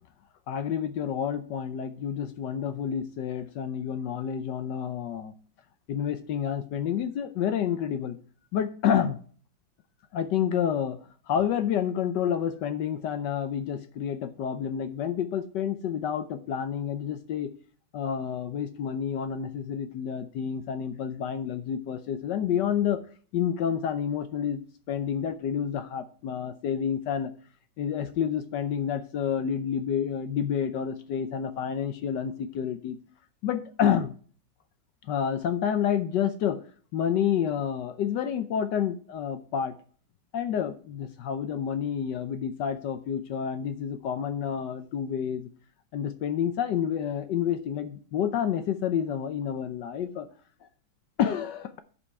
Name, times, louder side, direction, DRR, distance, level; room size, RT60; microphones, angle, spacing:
voice 1, 0.5-5.3 5.9-8.2 8.5-9.2 10.1-11.0 11.3-17.5 17.9-23.0 23.3-24.6 24.9-27.3 27.8-33.0 33.4-34.1 35.1-36.6 36.9-39.7 40.3-45.5 45.9-50.3 51.2-51.8, left 8 dB, 70° left, 10 dB, 1.2 m, -29 dB
11.0 x 5.5 x 4.2 m, 0.42 s
omnidirectional pair, 2.2 m